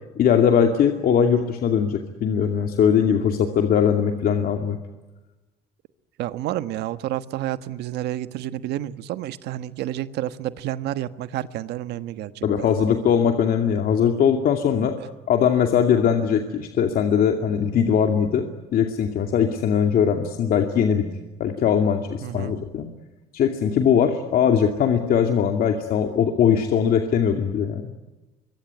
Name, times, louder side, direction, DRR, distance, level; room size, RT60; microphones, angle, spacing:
voice 1, 0.2-4.8 12.4-14.9 15.3-18.4 18.7-21.1 21.4-22.9 23.3-28.0, left 7 dB, 60° left, 4 dB, 2.5 m, -20 dB
voice 2, 6.2-12.8 22.2-22.5, right 13 dB, 80° right, 12 dB, 1.4 m, -30 dB
25.5 x 23.5 x 9.8 m, 1.1 s
cardioid pair, 110°, 17 cm